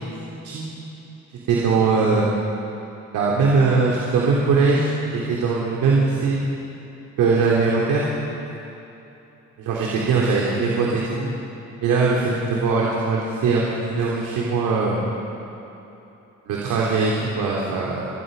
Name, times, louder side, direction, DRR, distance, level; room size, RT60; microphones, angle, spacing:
voice 1, 1.5-2.3 3.1-4.9 5.1-6.4 7.2-8.1 9.7-11.3 11.8-13.6 13.9-15.1 16.5-18.1, right 4 dB, 90° right, -4 dB, 3.5 m, -20 dB
28.5 x 20.5 x 5.5 m, 2.9 s
cardioid pair, 90°, 30 cm